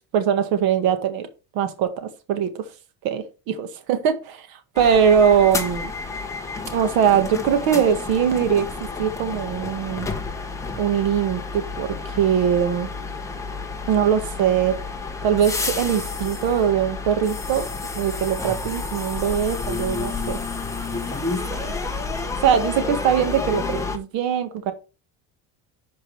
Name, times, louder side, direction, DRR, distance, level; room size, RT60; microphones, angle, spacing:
voice 1, 0.1-1.3 1.5-2.7 3.0-5.9 6.7-8.7 9.0-10.1 10.8-12.9 13.9-14.7 15.2-17.7 18.0-20.4 21.5-21.8 22.4-24.7, right 8 dB, 80° right, 1.7 m, -21 dB
sound 1, 4.8-24.0, left 4 dB, 10° left, 0.9 m, -30 dB
11.0 x 5.2 x 3.3 m
cardioid pair, 175°, 35 cm